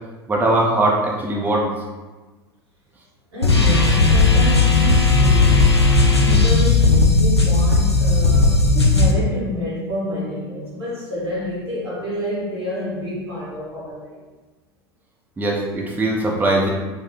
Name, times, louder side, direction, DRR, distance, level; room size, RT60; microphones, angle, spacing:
voice 1, 0.3-1.7 15.4-16.7, right 2 dB, 15° right, -2 dB, 0.5 m, -20 dB
voice 2, 3.3-5.6 6.2-14.2, left 1 dB, 80° right, -8 dB, 1.5 m, -28 dB
sound 1, 3.4-9.1, left 3 dB, 90° left, 0.4 m, -15 dB
4.0 x 2.0 x 3.1 m, 1.2 s
figure-of-eight pair, 80°, 13 cm